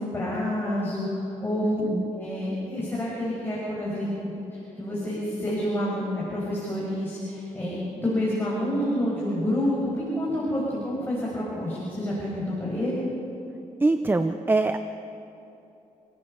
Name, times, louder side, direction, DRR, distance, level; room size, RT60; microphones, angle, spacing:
voice 1, 0.0-1.9 2.1-4.2 4.5-13.1, left 1 dB, 15° left, -7 dB, 6.2 m, -28 dB
voice 2, 1.6-2.1 13.8-14.8, right 2 dB, 15° right, 9 dB, 0.7 m, -24 dB
29.0 x 17.0 x 5.6 m, 2.9 s
cardioid pair, 115°, 13 cm